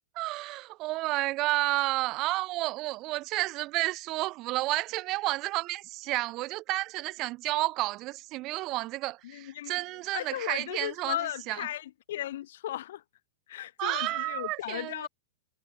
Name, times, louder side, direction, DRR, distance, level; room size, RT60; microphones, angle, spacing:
voice 1, 0.1-11.7 13.8-15.1, right 19 dB, 40° right, 0.6 m, -31 dB
voice 2, 9.2-9.7 10.1-13.0 13.5-15.1, left 13 dB, 65° left, 0.3 m, -36 dB
hypercardioid pair, 110°, 0 cm